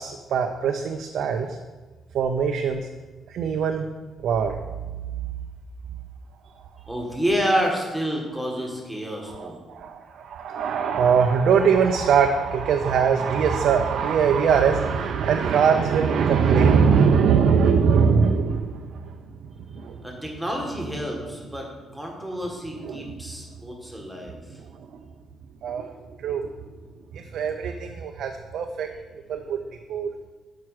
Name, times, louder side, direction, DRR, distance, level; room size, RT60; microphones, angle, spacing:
voice 1, 0.0-1.6 2.1-2.9 3.3-3.9 4.2-4.6 9.2-19.2 19.7-20.0 22.8-23.2 24.9-25.0 25.6-25.9 26.2-26.5 27.1-28.9 29.3-29.6 29.9-30.1, right 6 dB, 70° right, 5 dB, 0.4 m, -22 dB
voice 2, 6.9-9.6 20.0-21.7 21.9-24.4, equal, ahead, -1 dB, 1.3 m, -28 dB
5.9 x 4.6 x 4.7 m, 1.3 s
cardioid pair, 90°, 0 cm